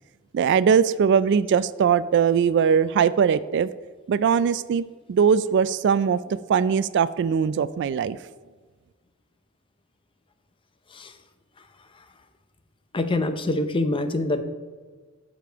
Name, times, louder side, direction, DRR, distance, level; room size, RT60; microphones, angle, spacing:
voice 1, 0.3-3.7 4.1-6.2 6.5-8.2, right 7 dB, 55° right, 16 dB, 0.3 m, -21 dB
voice 2, 12.9-14.4, left 2 dB, 25° left, 9 dB, 0.6 m, -25 dB
13.5 x 5.1 x 4.5 m, 1.4 s
head